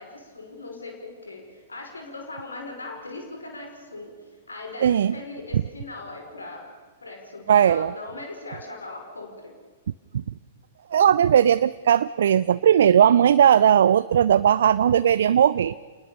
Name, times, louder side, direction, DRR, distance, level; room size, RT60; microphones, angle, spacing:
voice 1, 0.0-4.2 4.5-6.7 7.0-9.6, left 2 dB, 85° left, 2 dB, 5.0 m, -39 dB
voice 2, 4.8-5.2 5.5-5.6 7.5-7.9 10.1-10.2 10.9-15.7, right 9 dB, 70° right, 15 dB, 0.6 m, -18 dB
29.0 x 20.0 x 6.9 m, 1.5 s
figure-of-eight pair, 110°, 0 cm